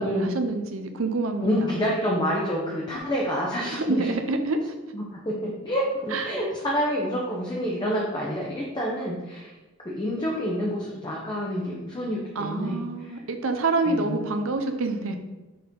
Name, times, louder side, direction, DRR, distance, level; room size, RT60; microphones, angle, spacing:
voice 1, 0.0-1.9 3.7-4.7 6.1-6.4 12.3-15.2, right 3 dB, 80° right, 6 dB, 0.7 m, -27 dB
voice 2, 1.4-4.1 4.9-9.5 9.8-13.2 13.9-14.3, equal, 20° left, -3 dB, 0.8 m, -28 dB
5.8 x 4.3 x 3.7 m, 1.1 s
head